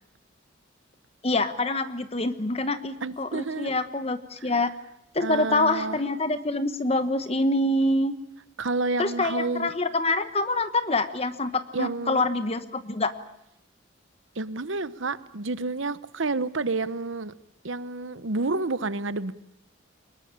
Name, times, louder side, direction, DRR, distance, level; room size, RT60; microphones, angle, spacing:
voice 1, 1.2-4.7 5.1-8.1 9.0-13.1, left 2 dB, 30° left, 1.1 m, -26 dB
voice 2, 3.0-3.8 4.4-4.5 5.2-6.0 8.6-9.7 11.7-12.3 14.3-17.3 17.6-19.3, right 3 dB, 70° right, 1.0 m, -29 dB
23.5 x 20.5 x 8.9 m
head